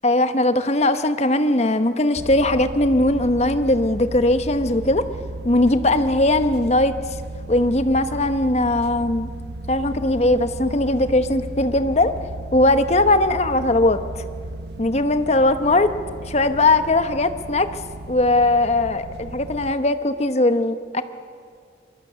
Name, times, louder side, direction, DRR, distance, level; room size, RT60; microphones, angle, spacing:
voice 1, 0.0-5.1 5.4-6.9 7.5-9.3 9.7-12.1 12.5-14.0 14.8-15.9 16.3-17.7 18.1-21.0, left 2 dB, 40° left, 10 dB, 1.0 m, -19 dB
sound 1, 2.2-19.7, right 2 dB, 65° right, 0.7 m, -35 dB
25.0 x 21.5 x 6.9 m, 2.1 s
head